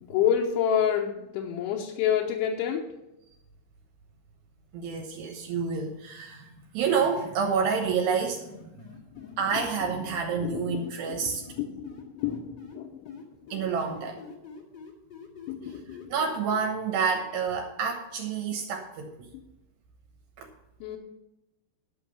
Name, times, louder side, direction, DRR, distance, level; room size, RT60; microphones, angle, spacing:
voice 1, 0.0-2.8 9.1-9.4 10.4-10.6 11.6-13.1 13.4-13.5 15.5-16.1 20.8-21.0, left 9 dB, 80° left, -2 dB, 3.2 m, -28 dB
voice 2, 4.7-8.7 9.4-11.4 13.5-14.2 16.1-19.3 20.4-20.5, right 6 dB, 70° right, 3 dB, 2.8 m, -29 dB
sound 1, 7.7-9.9 10.7-12.8 13.0-16.6, left 6 dB, 60° left, 1.1 m, -46 dB
12.0 x 5.8 x 7.0 m, 0.92 s
omnidirectional pair, 5.6 m